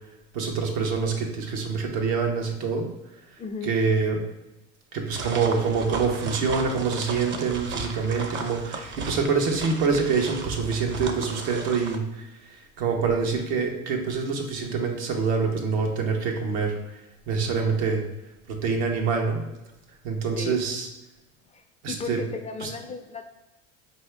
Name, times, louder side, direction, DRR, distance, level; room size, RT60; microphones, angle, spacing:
voice 1, 0.3-2.9 3.6-4.2 4.9-16.8 17.3-18.0 18.5-19.4 20.0-20.9 21.8-22.2 22.6-22.7, right 5 dB, 85° right, 2 dB, 0.9 m, -26 dB
voice 2, 3.4-3.8 20.3-20.6 21.5-23.3, left 4 dB, 20° left, 6 dB, 0.4 m, -35 dB
sound 1, 5.1-12.0, right 4 dB, 35° right, 0.6 m, -35 dB
4.6 x 2.7 x 3.2 m, 0.99 s
supercardioid pair, 95°, 33 cm